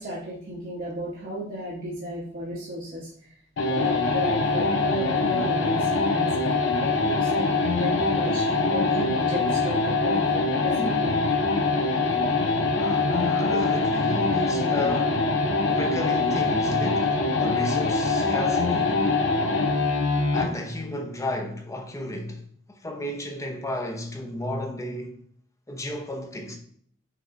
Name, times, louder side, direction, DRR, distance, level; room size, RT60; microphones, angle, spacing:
voice 1, 0.0-3.1 3.7-6.3 6.8-11.2, equal, 45° right, 0.9 m, -34 dB
sound 1, 3.6-20.6, left 3 dB, 70° left, 0.6 m, -23 dB
voice 2, 12.8-15.2 15.7-19.1 20.3-25.2 25.7-26.6, left 1 dB, 15° left, 0.7 m, -33 dB
5.5 x 3.0 x 2.5 m
head